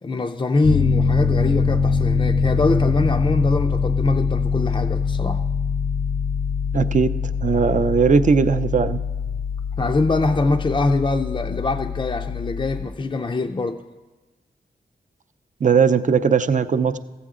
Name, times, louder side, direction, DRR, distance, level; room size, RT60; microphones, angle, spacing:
voice 1, 0.0-5.4 9.3-9.4 9.8-13.8, left 3 dB, 30° left, 3 dB, 0.4 m, -23 dB
Piano, 0.6-12.8, left 5 dB, 85° left, 0.9 m, -23 dB
voice 2, 6.7-7.1 7.4-9.0 15.6-17.0, right 5 dB, 50° right, 11 dB, 0.5 m, -18 dB
14.5 x 8.4 x 3.7 m, 1.2 s
wide cardioid pair, 75°, 17 cm